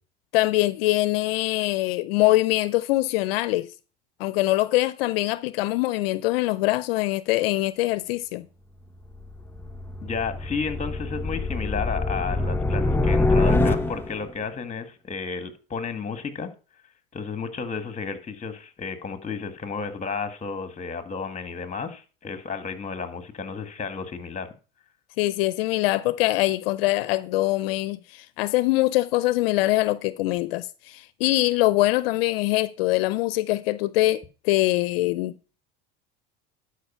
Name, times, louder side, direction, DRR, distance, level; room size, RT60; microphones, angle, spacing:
voice 1, 0.3-3.7 4.2-8.5 25.2-35.3, left 18 dB, 80° left, 0.5 m, -23 dB
sound 1, 9.0-14.3, left 2 dB, 5° left, 0.9 m, -25 dB
voice 2, 10.0-16.5 17.1-24.5, left 5 dB, 25° left, 1.8 m, -32 dB
11.5 x 5.0 x 5.6 m
hypercardioid pair, 85°, 29 cm